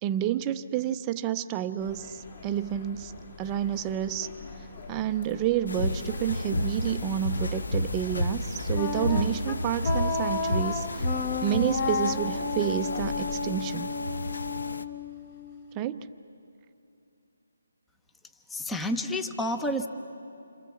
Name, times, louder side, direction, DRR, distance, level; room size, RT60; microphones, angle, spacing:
voice 1, 0.0-3.1 3.4-4.3 4.9-11.1 11.4-13.9 15.7-16.1, right 11 dB, 20° right, 9 dB, 0.7 m, -29 dB
sound 1, 1.8-13.3, left 3 dB, 45° left, 4.6 m, -42 dB
sound 2, 5.7-14.8, left 1 dB, 75° left, 1.1 m, -32 dB
Wind instrument woodwind instrument, 8.7-15.7, left 4 dB, 30° left, 1.4 m, -32 dB
voice 2, 18.5-19.9, left 1 dB, 5° left, 7 dB, 0.9 m, -29 dB
28.0 x 26.5 x 7.3 m, 2.7 s
figure-of-eight pair, 155°, 0 cm